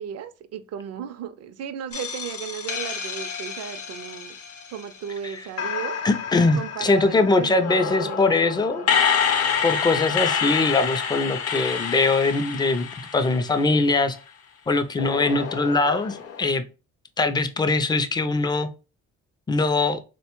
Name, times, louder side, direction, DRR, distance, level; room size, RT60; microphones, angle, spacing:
voice 1, 0.0-4.4 4.7-6.0 6.5-8.4 8.8-9.0, right 8 dB, 55° right, 0.5 m, -35 dB
sound 1, 1.9-5.1 5.6-14.0 15.0-16.4, left 7 dB, 55° left, 0.6 m, -28 dB
voice 2, 6.0-8.8 9.6-12.9 13.1-14.2 14.7-16.6 17.2-18.7 19.5-20.0, left 3 dB, 15° left, 0.3 m, -22 dB
3.2 x 2.2 x 2.9 m
cardioid pair, 90°, 30 cm